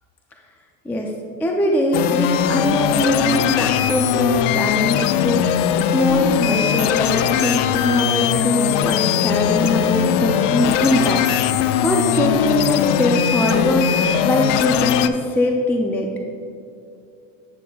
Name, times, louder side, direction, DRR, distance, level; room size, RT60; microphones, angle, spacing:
voice 1, 1.4-16.1, left 1 dB, 5° left, 1 dB, 0.3 m, -22 dB
sound 1, 1.9-15.1, left 9 dB, 75° left, 0.5 m, -20 dB
9.3 x 8.1 x 2.3 m, 2.7 s
supercardioid pair, 130°, 36 cm